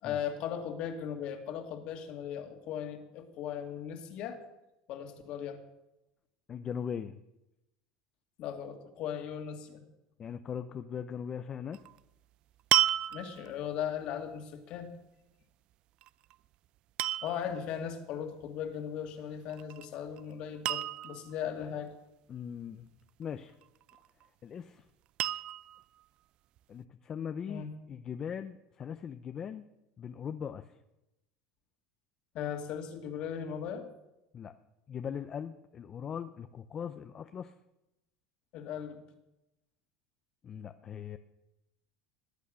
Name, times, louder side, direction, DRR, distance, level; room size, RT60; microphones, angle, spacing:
voice 1, 0.0-4.4 4.9-5.6 8.4-9.8 13.1-14.9 17.2-21.9 27.5-27.7 32.3-33.8 38.5-39.0, left 8 dB, 50° left, 5 dB, 2.2 m, -38 dB
voice 2, 6.5-7.2 10.2-11.8 22.3-22.9 23.2-23.6 24.4-24.9 26.7-29.7 30.0-30.8 34.3-34.5 34.9-37.5 40.4-41.2, left 7 dB, 30° left, 9 dB, 0.6 m, -40 dB
sound 1, 11.7-12.0 12.7-13.6 16.0-16.3 17.0-17.5 19.5-19.9 20.2-20.3 20.6-21.3 23.6-24.2 25.2-25.8 26.6-26.7, right 12 dB, 45° right, 0.4 m, -31 dB
20.0 x 8.4 x 6.3 m, 0.92 s
supercardioid pair, 135°, 2 cm